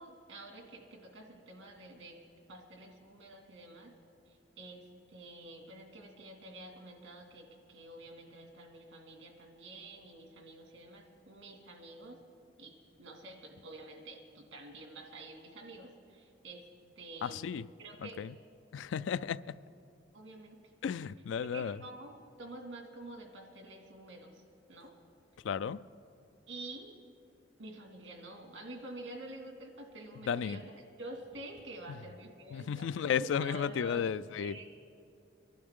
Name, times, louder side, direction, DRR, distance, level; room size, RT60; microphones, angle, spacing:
voice 1, 0.0-2.2 2.5-3.9 4.3-12.2 12.6-16.7 17.0-17.5 17.8-18.2 20.1-20.6 21.4-24.4 24.7-24.9 26.5-26.9 27.6-34.0 34.4-34.6, right 2 dB, 90° right, 2.1 m, -48 dB
voice 2, 17.2-17.6 18.0-18.3 18.7-19.6 20.8-21.8 25.4-25.8 30.3-30.6 32.5-34.6, left 7 dB, 80° left, 0.3 m, -33 dB
23.5 x 12.0 x 3.7 m
head